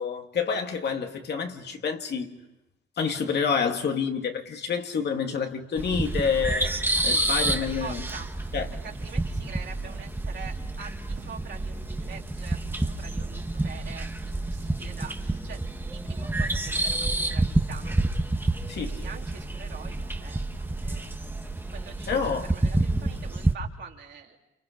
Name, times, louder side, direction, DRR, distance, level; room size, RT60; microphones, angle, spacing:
voice 1, 0.0-2.4 3.0-8.0 8.5-8.7 18.7-19.0 22.1-22.5, left 6 dB, 55° left, 2.4 m, -28 dB
sound 1, 5.8-23.5, right 2 dB, 10° right, 1.6 m, -29 dB
voice 2, 7.1-8.6 8.8-18.0 18.5-22.2 22.5-24.4, right 6 dB, 65° right, 4.0 m, -45 dB
29.0 x 29.0 x 5.3 m
cardioid pair, 90°, 20 cm